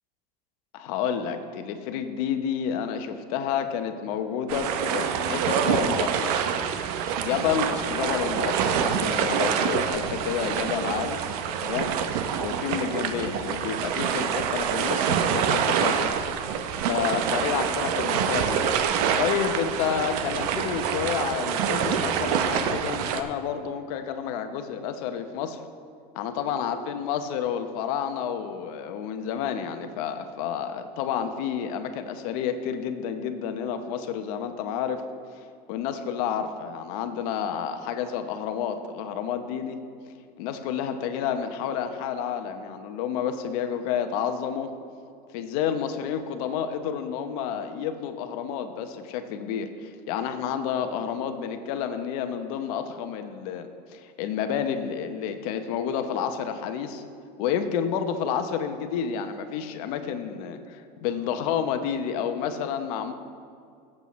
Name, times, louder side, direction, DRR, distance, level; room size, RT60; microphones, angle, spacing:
voice 1, 0.7-6.4 7.2-11.2 11.6-11.9 12.4-16.1 16.8-18.7 19.2-25.6 26.1-35.0 35.4-39.8 40.4-44.7 45.3-57.0 57.4-63.1, left 8 dB, 70° left, 7 dB, 0.9 m, -30 dB
sound 1, 4.5-23.2, right 7 dB, 70° right, 0.8 m, -26 dB
16.5 x 7.7 x 3.1 m, 2.3 s
supercardioid pair, 125°, 20 cm